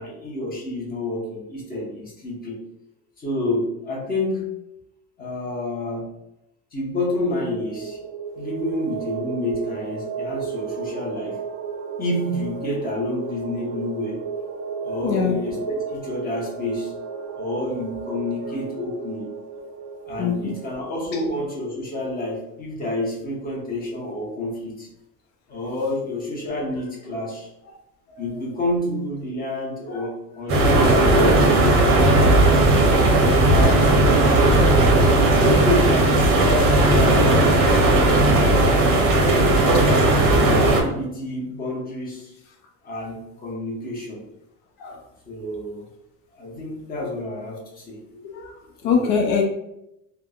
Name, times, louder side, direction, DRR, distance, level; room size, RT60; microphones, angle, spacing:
voice 1, 0.0-2.6 3.2-4.5 5.2-6.1 6.7-8.0 8.4-11.4 12.0-14.2 14.8-16.9 17.4-19.3 20.1-24.9 25.5-27.5 28.2-32.5 33.5-34.7 35.4-38.5 39.0-42.3 42.8-44.2 45.3-45.9 46.3-48.0 48.8-49.1, left 1 dB, 25° left, -3 dB, 0.9 m, -28 dB
sound 1, 7.3-21.6, right 6 dB, 85° right, 0.6 m, -34 dB
voice 2, 15.0-15.4 20.2-20.6 21.1-21.2 28.1-28.3 29.9-30.1 39.7-39.9 44.8-45.0 48.2-49.4, left 6 dB, 70° left, 1 dB, 0.6 m, -25 dB
sound 2, 30.5-40.8, right 2 dB, 35° right, 0.6 m, -16 dB
3.3 x 2.1 x 2.3 m, 0.85 s
cardioid pair, 125°, 37 cm